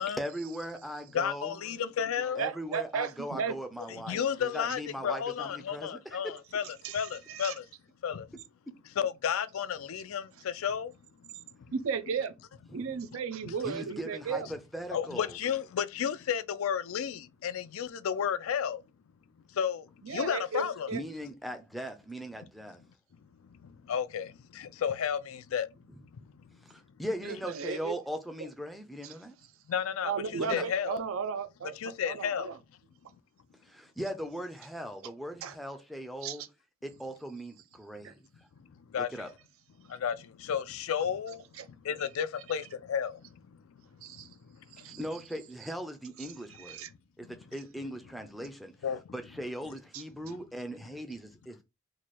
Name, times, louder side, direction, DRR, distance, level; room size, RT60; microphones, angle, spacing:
voice 1, 0.1-1.6 2.4-6.3 8.7-8.8 12.7-12.9 13.6-15.4 20.9-22.8 26.6-29.4 30.4-30.7 33.6-36.4 36.8-38.5 38.9-39.3 44.8-46.8 47.2-48.7 49.1-51.6, equal, ahead, 0.4 m, -39 dB
voice 2, 1.1-2.4 3.9-6.7 6.9-7.6 8.0-8.3 9.0-10.9 13.4-13.5 14.9-18.8 19.6-20.9 23.9-25.7 29.7-31.0 31.8-32.5 38.9-39.3 39.9-41.4 41.8-43.2 47.3-47.4 48.8-49.0, left 8 dB, 80° left, 0.4 m, -32 dB
voice 3, 2.4-3.5 6.8-7.0 7.3-7.5 11.7-12.3 12.7-14.5 20.0-21.0 27.2-28.0 29.0-29.1 30.0-32.5 35.4-35.5 36.2-36.4 38.0-38.1 41.6-41.7 44.0-44.3 44.8-45.0 46.7-46.9 49.9-50.0, right 6 dB, 85° right, 0.4 m, -35 dB
3.1 x 2.2 x 4.2 m
head